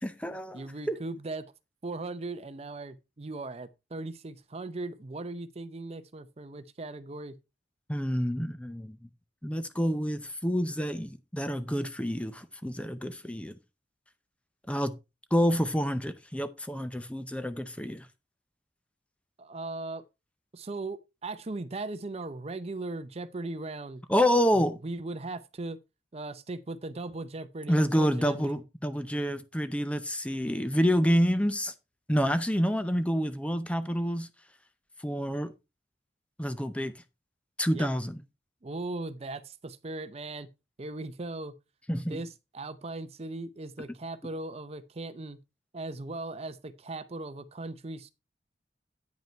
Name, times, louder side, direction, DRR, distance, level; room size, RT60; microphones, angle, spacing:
voice 1, 0.0-1.0 7.9-9.0 9.4-13.6 14.7-14.9 15.3-18.1 24.1-24.8 27.7-31.7 32.1-34.3 35.0-35.5 36.4-37.0 37.6-38.2 41.9-42.2, equal, 5° left, 0.5 m, -28 dB
voice 2, 0.5-1.5 1.8-7.4 19.4-20.0 20.5-24.0 24.8-25.8 26.1-28.6 37.7-37.9 38.6-40.5 40.8-41.5 42.1-42.3 42.5-45.4 45.7-48.1, right 2 dB, 35° right, 0.6 m, -38 dB
9.2 x 5.4 x 4.4 m
head